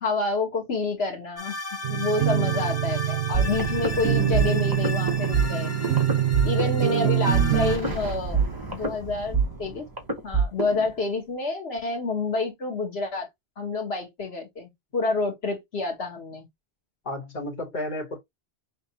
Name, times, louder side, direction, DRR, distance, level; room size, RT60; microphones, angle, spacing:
voice 1, 0.0-1.6 1.9-5.7 6.4-8.5 8.7-9.9 10.2-13.3 13.6-16.5, left 3 dB, 80° left, 1.5 m, -28 dB
sound 1, 1.4-7.8, left 3 dB, 25° left, 0.4 m, -36 dB
sound 2, 1.8-7.8, right 11 dB, 90° right, 0.9 m, -25 dB
sound 3, 3.3-10.9, right 5 dB, 20° right, 1.0 m, -27 dB
voice 2, 6.4-7.0 17.0-18.2, left 1 dB, 50° left, 1.5 m, -34 dB
5.8 x 2.4 x 2.9 m
omnidirectional pair, 1.0 m